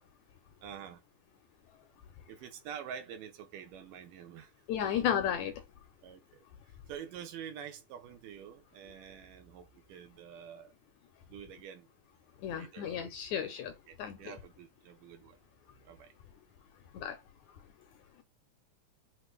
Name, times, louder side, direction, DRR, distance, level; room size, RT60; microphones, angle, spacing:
voice 1, 0.6-1.0 2.3-4.5 6.0-6.4 6.9-10.7 11.3-11.9 12.6-13.0 13.9-15.4 15.8-16.1, right 8 dB, 80° right, 2.5 m, -47 dB
voice 2, 4.7-5.6 12.4-13.7 14.0-14.3 16.9-17.2, left 9 dB, 75° left, 1.8 m, -33 dB
6.0 x 2.2 x 3.3 m
omnidirectional pair, 3.8 m